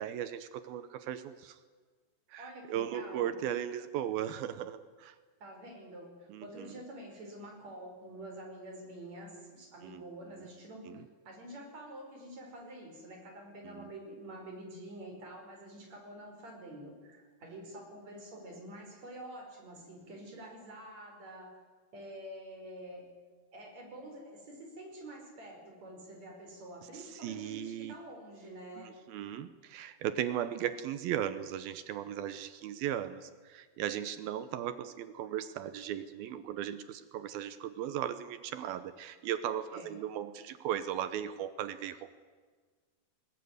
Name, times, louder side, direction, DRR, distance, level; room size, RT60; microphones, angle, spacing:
voice 1, 0.0-1.6 2.3-5.2 6.3-6.7 9.8-10.0 10.9-11.0 13.6-13.9 26.9-27.9 28.8-42.1, right 10 dB, 75° right, 12 dB, 2.7 m, -37 dB
voice 2, 2.3-3.3 5.4-21.6 21.9-23.1 23.5-28.9 39.7-39.9, right 1 dB, 45° right, 2 dB, 6.0 m, -47 dB
21.5 x 20.0 x 9.6 m, 1.5 s
omnidirectional pair, 4.5 m